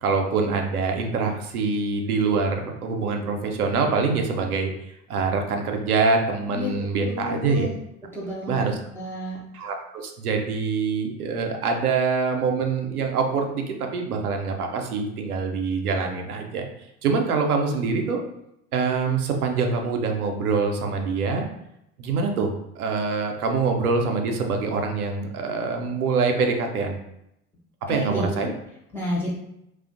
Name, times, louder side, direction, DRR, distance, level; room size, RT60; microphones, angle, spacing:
voice 1, 0.0-4.7 5.1-7.7 8.5-8.8 9.5-16.7 17.0-18.2 18.7-21.5 22.0-27.0 27.9-28.5, right 4 dB, 80° right, 3 dB, 0.5 m, -25 dB
voice 2, 7.0-7.7 8.1-9.4 27.9-28.5 28.9-29.3, left 1 dB, 5° left, -7 dB, 0.3 m, -30 dB
2.4 x 2.1 x 2.5 m, 0.81 s
figure-of-eight pair, 75°, 44 cm